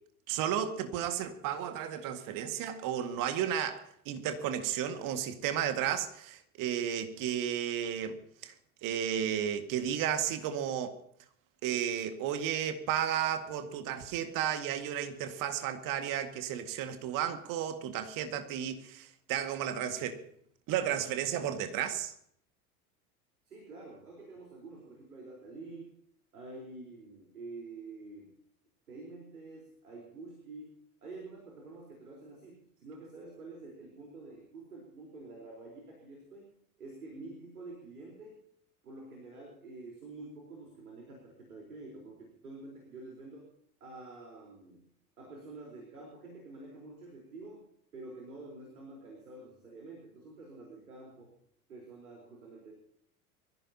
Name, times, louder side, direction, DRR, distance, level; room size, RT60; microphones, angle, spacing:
voice 1, 0.3-8.2 8.4-8.5 8.8-11.0 11.6-20.2 20.7-22.1, right 9 dB, 45° right, 2.0 m, -33 dB
voice 2, 23.4-25.9 26.3-28.3 28.9-36.5 36.8-38.4 38.8-43.5 43.8-44.9 45.2-47.7 47.9-51.3 51.7-52.7, right 3 dB, 80° right, 4.3 m, -48 dB
23.5 x 15.5 x 2.9 m
figure-of-eight pair, 75°, 44 cm